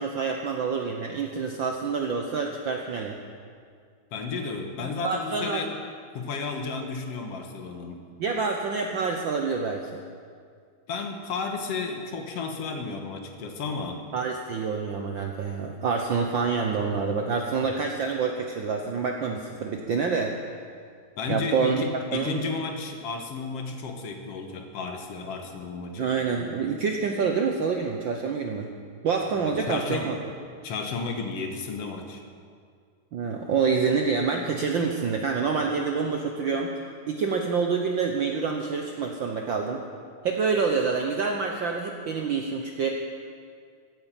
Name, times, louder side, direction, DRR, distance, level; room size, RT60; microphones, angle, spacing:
voice 1, 0.0-3.2 4.8-5.6 8.2-10.0 14.1-20.4 21.3-21.8 22.1-22.4 26.0-28.7 29.0-30.2 33.1-36.7 37.1-39.8 40.2-42.9, right 5 dB, 85° right, 2 dB, 1.0 m, -27 dB
voice 2, 4.1-5.7 6.1-8.0 10.9-14.0 21.2-26.1 29.3-30.1 30.6-32.2, left 4 dB, 60° left, 4 dB, 2.1 m, -33 dB
16.0 x 9.3 x 7.5 m, 2.1 s
omnidirectional pair, 3.4 m